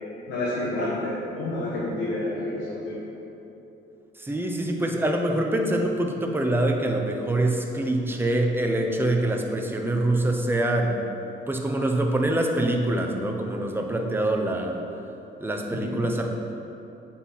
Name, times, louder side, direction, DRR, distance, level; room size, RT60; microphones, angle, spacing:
voice 1, 0.3-3.0 15.7-16.0, left 1 dB, 80° left, -7 dB, 1.5 m, -29 dB
voice 2, 4.2-11.1 11.5-14.8 15.4-16.3, right 1 dB, 10° right, 2 dB, 0.8 m, -25 dB
8.1 x 4.2 x 5.7 m, 2.9 s
cardioid pair, 90°, 20 cm